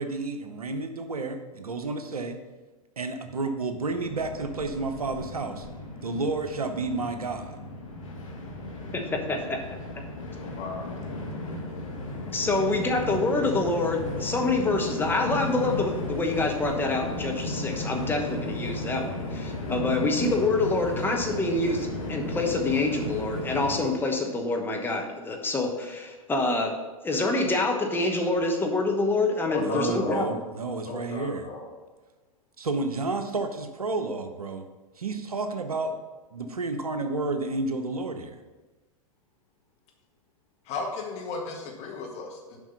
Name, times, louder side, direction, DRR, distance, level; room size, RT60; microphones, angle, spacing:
voice 1, 0.0-2.4 3.0-5.7 6.0-7.6 29.6-31.5 32.6-34.7 35.0-36.0 36.3-38.4, right 3 dB, 80° right, 7 dB, 0.8 m, -31 dB
Train, 3.9-23.8, left 2 dB, 65° left, 1.7 m, -35 dB
voice 2, 8.9-9.8 12.3-26.7 27.0-30.3, left 2 dB, 10° left, 2 dB, 1.1 m, -26 dB
voice 3, 10.6-10.9 29.5-30.3 30.9-31.7 40.7-42.6, left 4 dB, 35° left, 1 dB, 1.6 m, -34 dB
7.2 x 5.2 x 5.6 m, 1.2 s
figure-of-eight pair, 95°, 19 cm